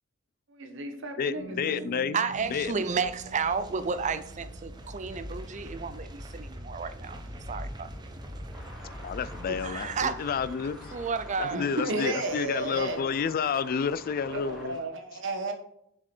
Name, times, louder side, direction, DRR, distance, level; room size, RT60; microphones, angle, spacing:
voice 1, 0.5-2.0 11.5-13.1 14.3-15.5, right 2 dB, 65° right, 1.2 m, -33 dB
voice 2, 1.2-2.2 2.5-2.7 9.0-10.9 11.4-14.8, left 6 dB, 45° left, 0.3 m, -30 dB
sound 1, 1.3-5.6, right 7 dB, 85° left, 1.3 m, -48 dB
voice 3, 1.7-8.2 9.5-10.2 10.9-11.7, right 5 dB, 35° right, 0.5 m, -32 dB
sound 2, 2.3-13.5 13.7-14.1 14.4-14.5, equal, 20° right, 0.8 m, -44 dB
sound 3, 8.5-14.7, left 1 dB, 5° right, 1.5 m, -48 dB
7.4 x 4.8 x 4.4 m
head